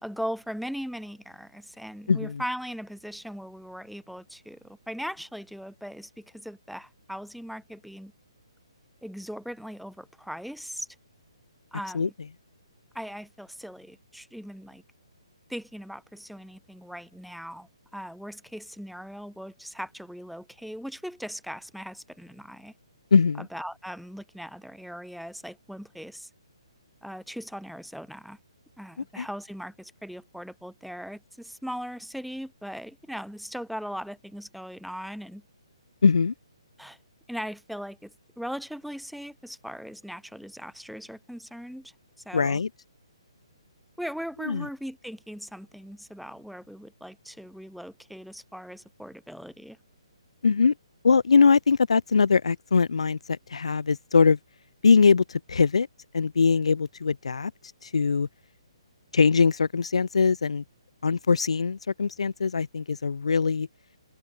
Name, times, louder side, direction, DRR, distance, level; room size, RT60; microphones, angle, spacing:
voice 1, 0.0-8.1 9.0-10.9 11.7-12.1 12.9-14.8 15.5-22.7 23.4-26.3 27.0-28.4 28.8-35.4 36.8-37.0 37.3-41.9 42.3-42.6 44.0-49.8, equal, ahead, 3.7 m, -39 dB
voice 2, 2.1-2.4 11.9-12.1 23.1-23.5 29.2-29.3 36.0-36.3 42.3-42.7 44.4-44.7 50.4-50.7 51.0-54.4 54.8-55.9 56.1-57.5 57.8-58.3 59.1-60.6 61.0-63.7, left 5 dB, 90° left, 0.8 m, -22 dB
hypercardioid pair, 175°, 3 cm